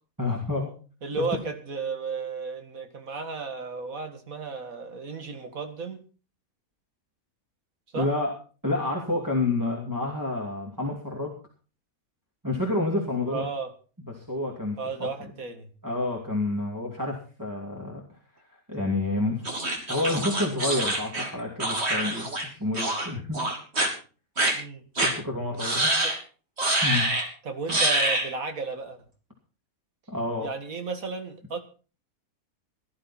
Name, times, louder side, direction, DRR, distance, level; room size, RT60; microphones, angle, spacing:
voice 1, 0.2-0.7 1.2-1.3 7.9-8.3 8.6-11.4 12.4-13.4 14.1-14.8 15.8-18.0 18.7-19.5 19.9-23.4 25.0-25.9 26.8-27.0 27.7-27.8 30.1-30.5, left 2 dB, 10° right, -2 dB, 2.5 m, -29 dB
voice 2, 1.0-6.0 7.9-8.1 13.3-13.7 14.8-15.7 24.5-24.8 26.0-26.1 27.4-29.0 30.4-31.6, right 4 dB, 65° right, 6 dB, 2.2 m, -34 dB
sound 1, 19.4-22.5 22.7-23.1 23.3-23.9 24.4-24.5 25.0-25.1 25.6-26.2 26.6-27.3 27.7-28.3, right 1 dB, 45° right, 3.1 m, -25 dB
17.0 x 11.5 x 4.3 m, 0.38 s
omnidirectional pair, 1.6 m